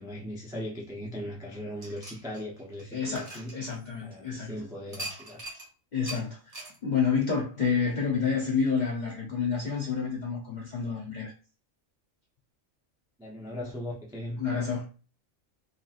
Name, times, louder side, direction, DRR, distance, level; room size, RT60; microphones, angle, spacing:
voice 1, 0.0-3.6 4.0-5.5 13.2-14.4, left 1 dB, 5° right, 0.3 m, -38 dB
sound 1, 1.8-4.2 4.9-5.7 6.1-6.2 6.5-6.8, right 2 dB, 30° right, 0.8 m, -41 dB
voice 2, 2.9-4.6 5.9-11.3 14.4-14.9, left 6 dB, 50° left, 0.6 m, -29 dB
2.8 x 2.8 x 2.4 m
omnidirectional pair, 1.4 m